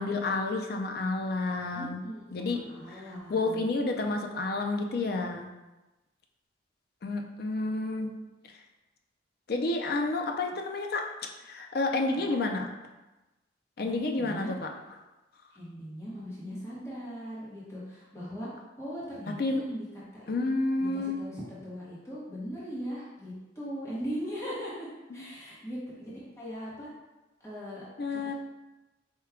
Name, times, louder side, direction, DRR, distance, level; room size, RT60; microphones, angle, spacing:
voice 1, 0.0-2.0 2.3-2.6 2.9-3.0 3.3-5.5 7.0-8.1 9.5-11.0 11.4-12.7 13.8-14.7 19.4-19.6 20.3-21.2 25.1-25.2 28.0-28.3, left 3 dB, 50° left, 3 dB, 0.4 m, -30 dB
voice 2, 1.7-3.7 12.2-12.4 13.8-14.5 15.5-18.5 18.8-20.4 20.8-24.9 25.1-26.9 27.4-28.3, equal, 15° left, -8 dB, 0.9 m, -39 dB
4.4 x 2.2 x 3.6 m, 1.1 s
head